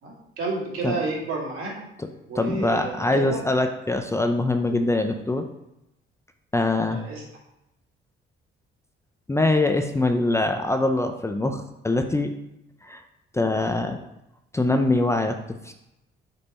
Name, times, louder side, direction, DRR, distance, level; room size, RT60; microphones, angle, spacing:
voice 1, 0.0-1.7 2.3-3.4 6.9-7.2, right 3 dB, 85° right, -3 dB, 2.2 m, -31 dB
voice 2, 2.3-5.5 6.5-7.0 9.3-12.3 12.8-13.0 13.3-14.0 14.5-15.4 15.6-15.7, left 2 dB, 15° left, 5 dB, 0.5 m, -23 dB
5.4 x 4.1 x 5.3 m, 0.89 s
cardioid pair, 95°, 21 cm